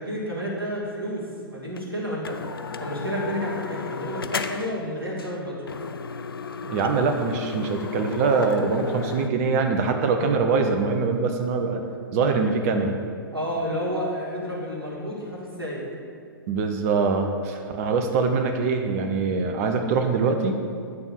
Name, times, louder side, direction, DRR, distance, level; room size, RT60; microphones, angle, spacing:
voice 1, 0.0-2.4 2.8-5.7 13.3-15.9, equal, 90° right, -5 dB, 1.7 m, -30 dB
sound 1, 1.8-1.9 2.2-4.8 5.2-5.4 5.7-9.3, left 5 dB, 75° left, 0.4 m, -34 dB
voice 2, 6.7-11.8 12.1-13.0 16.5-20.5, right 4 dB, 40° right, 5 dB, 0.8 m, -23 dB
9.5 x 3.6 x 6.2 m, 2.2 s
figure-of-eight pair, 110°, 12 cm